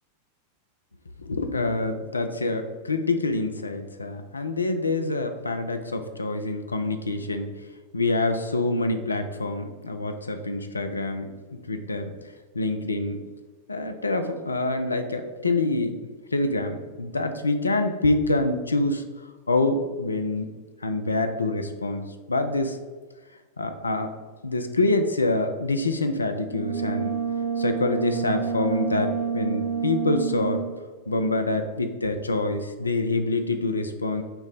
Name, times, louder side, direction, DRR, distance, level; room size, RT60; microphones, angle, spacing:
voice 1, 1.2-7.5 7.9-11.3 11.7-12.1 12.5-13.2 13.7-19.0 19.5-20.5 20.8-22.8 23.6-24.1 24.4-27.1 27.6-30.6 31.1-34.2, left 2 dB, 80° left, 7 dB, 0.4 m, -26 dB
Brass instrument, 26.5-30.8, right 7 dB, 25° right, 0.5 m, -28 dB
5.7 x 2.1 x 3.9 m, 1.4 s
figure-of-eight pair, 90°, 0 cm